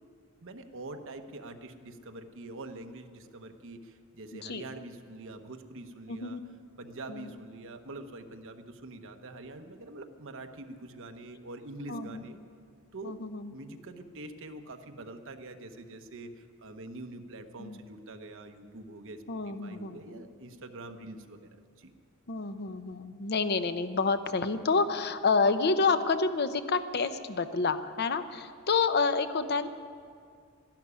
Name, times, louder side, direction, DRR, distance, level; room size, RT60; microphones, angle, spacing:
voice 1, 0.4-6.4 6.8-12.4 12.9-13.2 13.5-21.5 21.8-21.9, right 2 dB, 65° right, 7 dB, 1.1 m, -45 dB
voice 2, 4.3-4.7 6.1-6.4 7.1-7.3 11.9-12.2 13.0-13.5 17.6-17.8 19.3-20.2 22.3-29.7, left 4 dB, 50° left, 10 dB, 0.7 m, -29 dB
12.5 x 12.0 x 9.7 m, 2.2 s
head